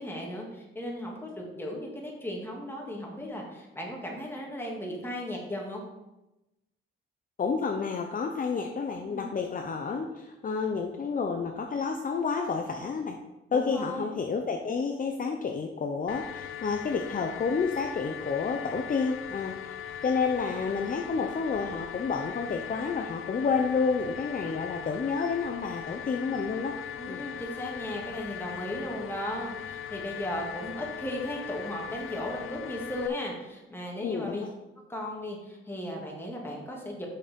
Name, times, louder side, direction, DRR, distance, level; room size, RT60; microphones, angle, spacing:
voice 1, 0.0-5.8 9.1-9.3 13.5-14.2 27.0-34.4 34.9-37.1, left 1 dB, 10° left, -1 dB, 2.2 m, -36 dB
voice 2, 7.4-13.2 13.5-19.8 20.0-26.8 27.1-27.2 34.0-34.5, left 5 dB, 40° left, 3 dB, 0.7 m, -30 dB
sound 1, 16.1-33.1, left 10 dB, 75° left, 0.5 m, -40 dB
6.6 x 6.4 x 5.2 m, 0.99 s
cardioid pair, 110°, 21 cm